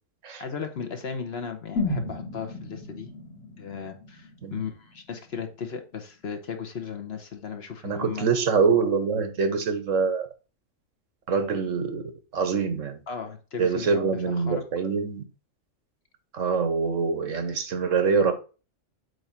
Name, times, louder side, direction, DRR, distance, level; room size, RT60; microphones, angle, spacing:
voice 1, 0.4-3.1 3.6-8.3 13.1-14.6, left 6 dB, 55° left, 1.2 m, -36 dB
sound 1, 1.8-5.7 6.0-6.1, left 2 dB, 70° left, 2.7 m, -34 dB
voice 2, 7.8-10.3 11.3-12.0 12.3-13.0 13.6-15.2 16.3-18.3, right 5 dB, 75° right, 1.4 m, -24 dB
7.9 x 2.8 x 5.7 m
omnidirectional pair, 1.3 m